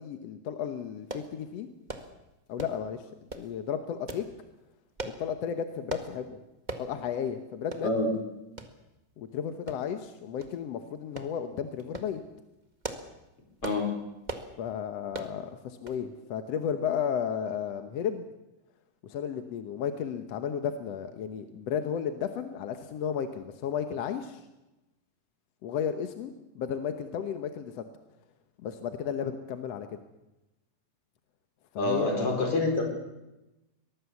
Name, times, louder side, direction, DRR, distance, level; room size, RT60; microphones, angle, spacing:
voice 1, 0.0-1.7 2.5-3.0 3.3-4.3 5.0-6.4 6.8-7.9 9.2-12.2 14.6-18.3 19.0-24.4 25.6-27.9 28.6-30.0 31.7-32.5, left 8 dB, 65° left, 8 dB, 1.8 m, -33 dB
sound 1, 1.1-1.3 1.9-2.1 2.6-2.8 3.3-3.5 4.1-4.3 5.0-5.2 5.9-6.1 6.7-6.9 7.3-7.4 7.7-7.9 8.6-8.7 9.7-10.0 10.4-10.5 11.2-11.3 11.8-12.1 12.6-13.1 13.6-13.8 14.2-14.5 15.1-15.3 15.9-16.0 16.3-16.4, right 3 dB, 45° right, 0.5 m, -38 dB
voice 2, 31.8-32.8, left 2 dB, 40° left, 2 dB, 5.7 m, -27 dB
23.0 x 19.5 x 7.2 m, 0.98 s
omnidirectional pair, 4.0 m